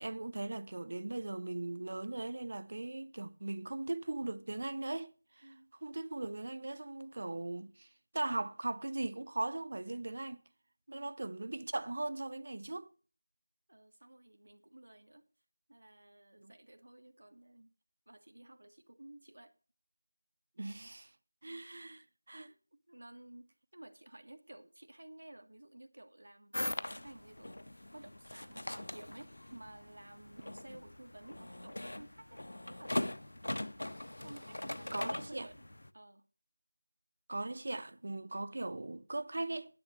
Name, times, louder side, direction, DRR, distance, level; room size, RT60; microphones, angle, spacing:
voice 1, 0.0-5.5 5.8-10.4 10.9-12.9 16.4-16.5 20.6-21.1 21.4-22.5 34.9-35.5 37.3-39.8, right 2 dB, 40° right, 0.7 m, -39 dB
voice 2, 5.4-5.7 10.9-11.1 13.7-15.3 15.7-17.7 18.1-19.6 22.7-27.6 27.9-33.1 34.2-35.7 35.9-36.2, right 1 dB, 75° right, 1.5 m, -54 dB
sound 1, 26.5-35.9, left 1 dB, 75° left, 0.7 m, -41 dB
10.5 x 6.6 x 7.5 m
figure-of-eight pair, 180°, 0 cm